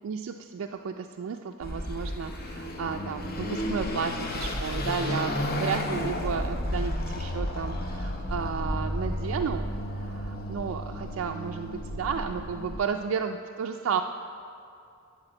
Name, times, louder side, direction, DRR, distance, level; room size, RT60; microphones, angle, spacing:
voice 1, 0.0-9.7 10.0-14.0, right 6 dB, 75° right, 4 dB, 0.3 m, -33 dB
Car passing by / Accelerating revving vroom, 1.6-12.8, left 1 dB, 50° left, 0.9 m, -32 dB
11.5 x 4.4 x 7.8 m, 2.4 s
head